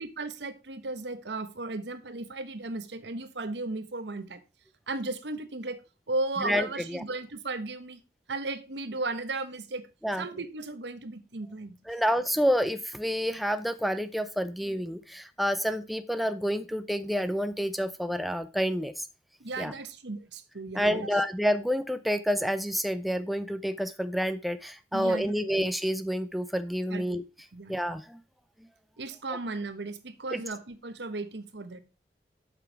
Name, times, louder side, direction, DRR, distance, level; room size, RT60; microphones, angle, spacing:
voice 1, 0.0-4.4 4.9-5.8 6.1-8.0 8.3-9.9 10.2-11.8 19.4-21.1 24.9-25.5 26.9-27.2 27.5-28.0 29.0-31.8, right 2 dB, 75° right, 1.0 m, -35 dB
voice 2, 6.4-7.0 10.0-10.2 11.9-19.1 19.6-19.7 20.7-27.2 27.7-28.2 30.3-30.4, equal, ahead, 0.4 m, -29 dB
7.9 x 6.1 x 4.5 m
head